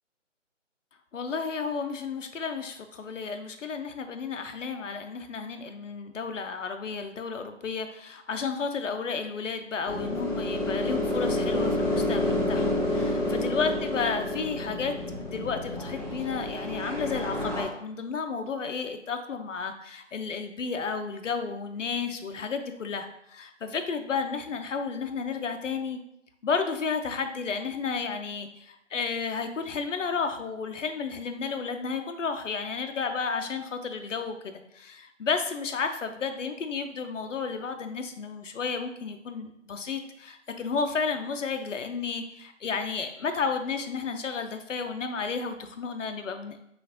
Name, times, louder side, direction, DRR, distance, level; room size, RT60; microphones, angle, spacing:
voice 1, 1.1-26.0 26.4-46.6, left 5 dB, 75° left, 7 dB, 0.7 m, -32 dB
sound 1, 9.8-17.6, left 1 dB, 10° left, 1.1 m, -29 dB
5.7 x 2.5 x 2.7 m, 0.76 s
figure-of-eight pair, 160°, 38 cm